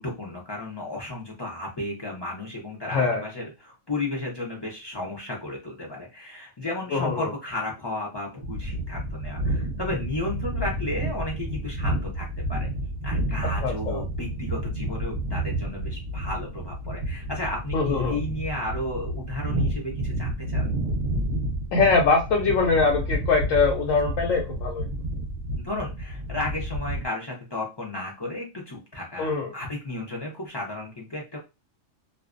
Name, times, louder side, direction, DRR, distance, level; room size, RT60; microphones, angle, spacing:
voice 1, 0.0-12.7 13.0-20.7 25.6-31.4, left 2 dB, 35° left, -2 dB, 0.4 m, -33 dB
voice 2, 2.9-3.2 6.9-7.3 13.6-14.0 17.7-18.2 21.7-24.9 29.2-29.5, left 4 dB, 80° left, -1 dB, 0.9 m, -23 dB
sound 1, 8.4-27.1, right 1 dB, 50° right, 0.7 m, -30 dB
2.4 x 2.1 x 2.4 m, 0.26 s
omnidirectional pair, 1.4 m